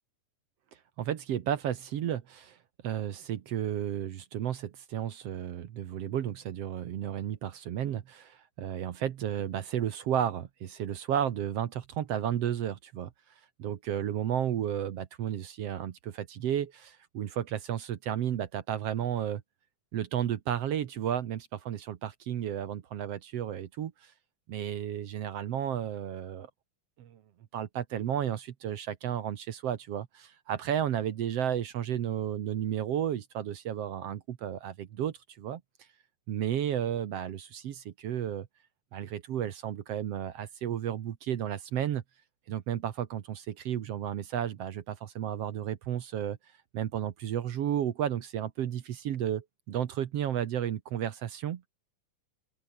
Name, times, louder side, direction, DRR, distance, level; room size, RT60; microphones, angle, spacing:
voice 1, 1.0-2.6 2.8-13.1 13.6-19.4 19.9-24.1 24.5-26.5 27.0-27.2 27.5-35.6 36.3-38.5 38.9-42.0 42.5-46.4 46.7-51.7, right 10 dB, 60° right, 1.8 m, -33 dB
open air
omnidirectional pair, 3.9 m